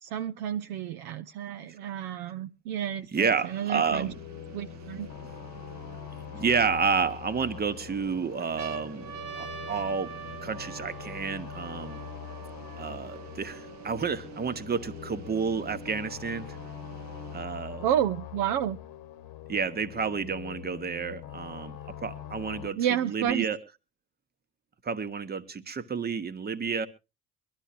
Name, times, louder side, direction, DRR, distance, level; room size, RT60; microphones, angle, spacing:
voice 1, 0.0-4.1 4.5-5.1 17.8-18.8 22.8-23.5, right 10 dB, 50° right, 0.8 m, -30 dB
voice 2, 1.8-2.2 3.1-4.1 5.2-5.3 6.3-10.1 10.4-12.0 12.8-16.6 17.3-17.8 19.5-23.6 24.8-26.9, right 5 dB, 20° right, 1.2 m, -30 dB
sound 1, 3.4-17.4, right 8 dB, 35° right, 1.1 m, -49 dB
sound 2, 3.9-22.7, left 12 dB, 45° left, 1.2 m, -43 dB
sound 3, 5.1-6.1 6.8-7.6 8.0-8.1 8.4-14.0 14.7-14.8 15.0-16.0 17.0-18.0, right 7 dB, 85° right, 2.9 m, -45 dB
23.5 x 12.0 x 2.5 m
figure-of-eight pair, 65°, 47 cm